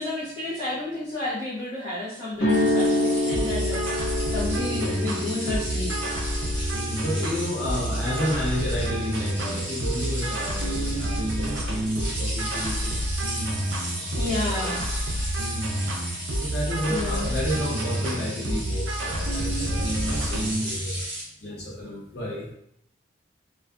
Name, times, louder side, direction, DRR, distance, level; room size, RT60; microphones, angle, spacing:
voice 1, 0.0-3.8 4.3-5.9 14.2-14.8 16.9-17.3 20.9-21.1, left 2 dB, 20° left, -12 dB, 0.7 m, -31 dB
sound 1, 2.3-10.4, left 1 dB, 75° left, 1.3 m, -29 dB
sound 2, 2.5-21.2, right 1 dB, 10° right, 0.9 m, -36 dB
sound 3, 3.3-20.6, right 1 dB, 80° right, 0.5 m, -29 dB
voice 2, 7.0-13.0 13.9-14.8 16.4-21.0 21.4-22.5, equal, 60° left, -5 dB, 0.7 m, -31 dB
2.4 x 2.3 x 2.4 m, 0.72 s
head